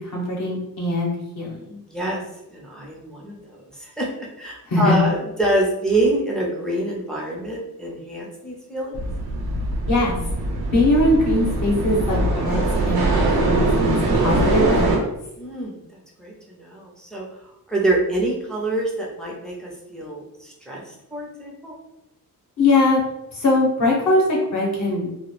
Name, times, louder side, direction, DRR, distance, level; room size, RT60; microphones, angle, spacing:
voice 1, 0.0-1.8 4.7-5.0 9.9-10.2 10.7-12.6 12.9-15.0 22.6-23.0 23.3-25.1, left 2 dB, 50° left, -3 dB, 0.7 m, -21 dB
voice 2, 1.9-2.2 2.5-3.4 3.7-9.0 15.4-15.8 16.2-17.3 17.7-21.7, right 1 dB, ahead, -3 dB, 0.4 m, -26 dB
sound 1, 8.9-15.0, right 2 dB, 85° right, 0.7 m, -22 dB
2.2 x 2.0 x 2.9 m, 0.86 s
wide cardioid pair, 145°, 37 cm